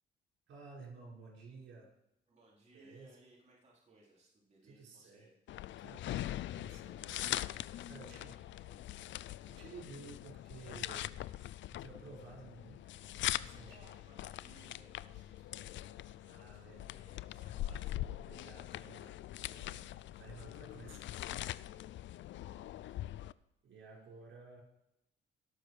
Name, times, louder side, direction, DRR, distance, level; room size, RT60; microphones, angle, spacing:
voice 1, 0.5-1.9 2.7-3.1 4.6-5.2 5.8-8.3 9.5-11.1 11.7-13.0 13.4-13.9 16.2-16.9 18.2-19.2 19.5-21.2 22.4-22.7 23.6-24.6, right 4 dB, 75° right, -2 dB, 5.5 m, -54 dB
voice 2, 2.3-5.3 7.7-9.0 13.5-18.0 20.5-20.7 22.4-23.1, right 2 dB, 35° right, -4 dB, 4.0 m, -64 dB
sound 1, 5.5-23.3, left 14 dB, 70° left, 0.5 m, -42 dB
17.5 x 7.0 x 4.9 m, 0.84 s
cardioid pair, 90°, 20 cm